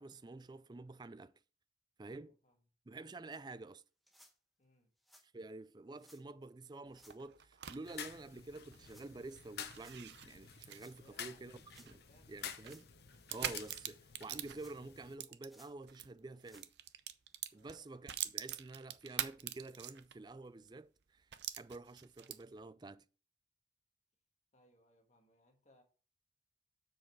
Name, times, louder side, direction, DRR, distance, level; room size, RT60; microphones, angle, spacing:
voice 1, 0.0-1.3 2.0-2.3 2.9-3.8 5.3-11.6 11.9-12.0 12.3-12.9 13.3-16.7 17.5-21.3 21.6-23.0, right 2 dB, 25° right, 0.4 m, -49 dB
voice 2, 2.0-2.6 4.6-4.9 11.0-11.5 11.9-12.4 17.5-17.8 24.5-25.8, left 1 dB, 40° left, 1.6 m, -68 dB
sound 1, 3.3-3.4 4.1-4.3 5.0-5.3 6.0-6.2 6.9-7.2 7.9-8.1 8.8-9.1 9.7-10.0 10.7-11.0 11.7-11.9 12.5-12.9 13.4-13.9 14.5-15.0 15.5-15.7 16.3-16.7 17.3-17.4 17.8-17.9 18.7-18.8, equal, ahead, 1.1 m, -64 dB
sound 2, 6.9-16.1 16.4-20.3 20.7-20.8 21.3-22.6, right 11 dB, 65° right, 0.6 m, -45 dB
sound 3, 7.8-15.2, left 8 dB, 55° left, 0.8 m, -51 dB
7.4 x 6.4 x 4.6 m
head